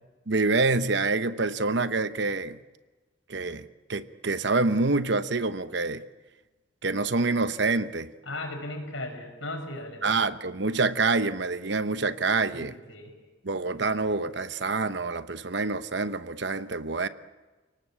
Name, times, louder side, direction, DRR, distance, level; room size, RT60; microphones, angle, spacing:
voice 1, 0.3-2.6 3.3-6.0 6.8-8.1 10.0-12.7 13.4-17.1, right 3 dB, 60° right, 12 dB, 0.9 m, -26 dB
voice 2, 8.2-10.1 12.5-13.1, left 1 dB, 80° left, 5 dB, 6.1 m, -37 dB
29.5 x 18.5 x 8.8 m, 1.3 s
head